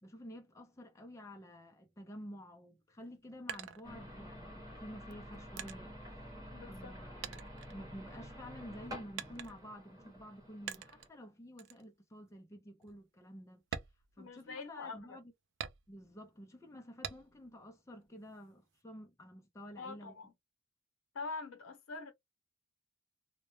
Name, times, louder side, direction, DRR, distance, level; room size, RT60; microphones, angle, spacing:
voice 1, 0.0-5.9 6.6-13.6 14.2-15.3 15.9-20.1, equal, 15° left, 0.4 m, -51 dB
sound 1, 2.9-4.5 5.1-6.9 7.2-8.4 9.2-9.8 10.7-11.2 11.6-11.8 12.3-12.4 12.8-13.0 13.6-14.8 15.6-16.2 17.0-17.6 18.0-18.8, right 8 dB, 60° right, 0.3 m, -46 dB
sound 2, 3.8-11.1, equal, 15° right, 1.0 m, -49 dB
voice 2, 6.5-6.9 14.2-15.2 19.8-20.3 21.1-22.1, left 4 dB, 85° left, 0.7 m, -44 dB
2.1 x 2.1 x 2.9 m
head